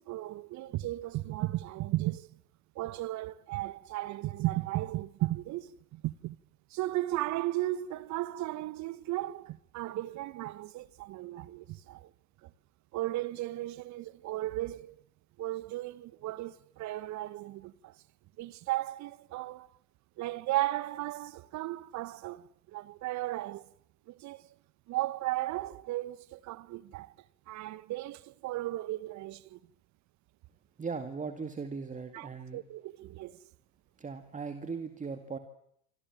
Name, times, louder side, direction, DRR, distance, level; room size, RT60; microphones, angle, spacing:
voice 1, 0.0-2.4 2.7-6.4 6.7-12.1 12.4-12.5 12.9-15.0 15.4-18.0 18.4-19.7 20.2-23.7 24.1-24.5 24.9-27.2 27.5-29.6 32.1-33.5, right 16 dB, 40° right, 1.1 m, -35 dB
voice 2, 30.8-32.6 34.0-35.4, right 5 dB, 15° right, 2.2 m, -38 dB
26.5 x 26.5 x 7.4 m
figure-of-eight pair, 85°, 46 cm